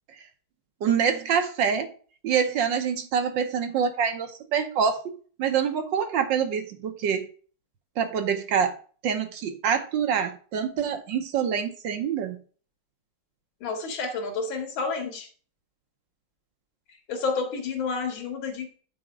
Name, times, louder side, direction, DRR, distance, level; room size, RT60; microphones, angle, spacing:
voice 1, 0.8-1.9 2.2-7.3 8.0-8.7 9.0-12.4, right 7 dB, 70° right, 7 dB, 1.5 m, -26 dB
voice 2, 13.6-15.3 17.1-18.8, left 4 dB, 70° left, 5 dB, 2.3 m, -30 dB
8.8 x 4.3 x 5.1 m, 0.41 s
omnidirectional pair, 2.3 m